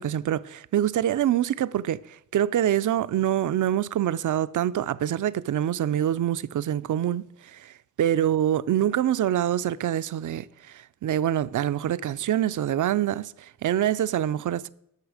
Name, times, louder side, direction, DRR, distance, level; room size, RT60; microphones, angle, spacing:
voice 1, 0.0-14.7, right 11 dB, 65° right, 0.5 m, -25 dB
13.0 x 6.3 x 4.9 m
wide cardioid pair, 100°, 33 cm